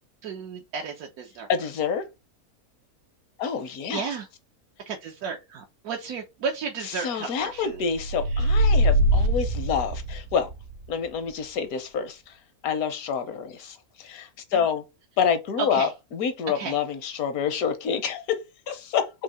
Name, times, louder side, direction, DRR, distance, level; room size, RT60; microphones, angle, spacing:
voice 1, 0.2-1.5 3.9-4.3 4.9-7.8 8.3-8.5 15.6-15.9 16.5-16.8, right 5 dB, 80° right, 1.2 m, -33 dB
voice 2, 1.5-2.0 3.4-4.1 6.8-10.5 10.9-12.4 12.6-14.8 15.2-19.1, left 7 dB, 75° left, 1.2 m, -28 dB
sound 1, 7.9-10.5, right 1 dB, 65° right, 0.9 m, -22 dB
4.5 x 2.7 x 4.1 m
omnidirectional pair, 1.6 m